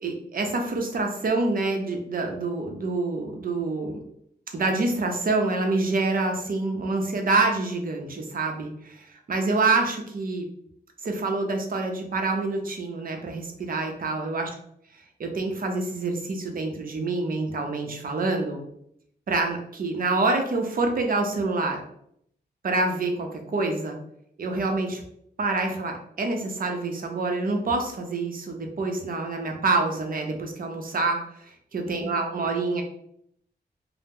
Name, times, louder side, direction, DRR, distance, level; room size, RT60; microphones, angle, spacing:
voice 1, 0.0-4.0 4.5-10.5 11.0-14.5 15.2-18.6 19.3-21.8 22.6-24.0 24.4-25.0 25.4-32.8, right 3 dB, 55° right, 3 dB, 0.6 m, -27 dB
2.7 x 2.0 x 3.5 m, 0.71 s
wide cardioid pair, 110°, 18 cm